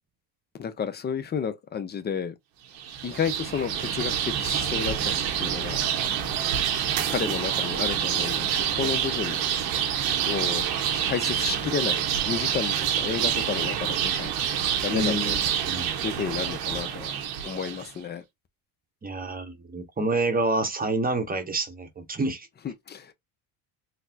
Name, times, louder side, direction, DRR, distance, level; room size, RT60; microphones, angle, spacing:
voice 1, 0.6-2.3 3.0-5.8 7.1-9.4 10.3-10.6 11.0-14.3 14.8-15.4 16.0-17.1 17.4-18.2 22.6-23.1, left 7 dB, 25° left, 0.4 m, -31 dB
sound 1, 2.7-17.9, right 9 dB, 90° right, 1.0 m, -27 dB
voice 2, 14.9-15.9 19.0-22.5, right 2 dB, 20° right, 0.8 m, -28 dB
4.0 x 2.0 x 2.7 m
supercardioid pair, 100°, 49 cm